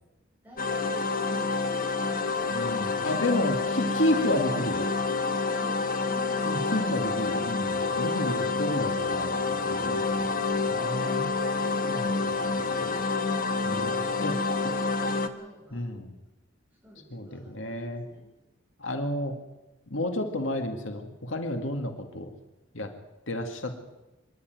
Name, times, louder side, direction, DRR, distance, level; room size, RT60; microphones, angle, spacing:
voice 1, 0.4-2.8 14.1-15.9 16.8-18.3, equal, 10° right, -3 dB, 7.8 m, -51 dB
sound 1, 0.6-15.3, left 4 dB, 45° left, 1.3 m, -28 dB
voice 2, 2.5-4.9 6.5-10.3 10.7-11.3 11.9-12.4 12.7-12.9 13.7-14.4 15.7-16.2 17.1-18.0 18.8-19.4 19.9-22.3 22.7-22.9 23.3-23.9, left 1 dB, 80° left, 5 dB, 2.1 m, -31 dB
25.5 x 11.5 x 9.3 m, 1.1 s
head